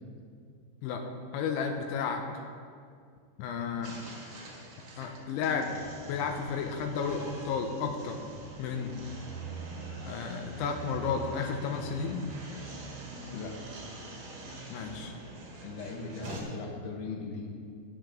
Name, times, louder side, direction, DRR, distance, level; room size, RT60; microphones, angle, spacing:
voice 1, 1.3-2.4 3.4-4.0 5.0-5.8 6.1-8.2 8.6-9.0 10.0-12.2 14.7-15.1, left 6 dB, 85° left, 3 dB, 3.0 m, -32 dB
sound 1, 3.8-16.4, right 2 dB, 55° right, 2.8 m, -44 dB
voice 2, 15.6-17.5, left 4 dB, 65° left, 0 dB, 2.3 m, -39 dB
20.0 x 7.3 x 3.7 m, 2.2 s
omnidirectional pair, 5.5 m